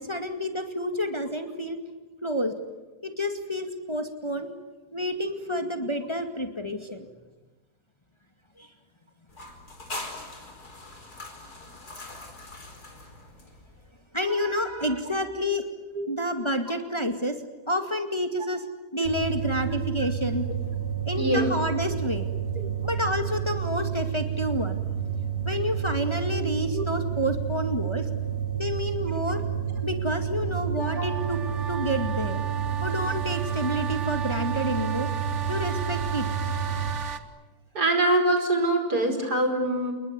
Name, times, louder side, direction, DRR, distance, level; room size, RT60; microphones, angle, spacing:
voice 1, 0.0-1.8 2.2-2.6 3.0-4.5 4.9-7.1 8.6-8.7 14.1-15.6 16.1-17.4 17.7-18.6 18.9-20.5 21.1-22.3 22.8-24.8 25.5-28.1 28.5-29.4 29.8-31.4 31.7-32.4 32.8-35.1 35.5-36.3, equal, 15° left, 6 dB, 2.2 m, -29 dB
sound 1, 9.3-13.9, left 2 dB, 70° left, 5.2 m, -41 dB
sound 2, 19.0-36.9, right 8 dB, 40° left, 4.8 m, -30 dB
voice 2, 21.2-21.5 22.6-22.7 26.7-26.9 31.0-31.1 37.7-39.9, right 2 dB, 75° right, 5 dB, 5.6 m, -24 dB
sound 3, 30.8-37.2, right 7 dB, 45° right, 1.8 m, -35 dB
29.5 x 21.0 x 9.7 m, 1.1 s
omnidirectional pair, 1.7 m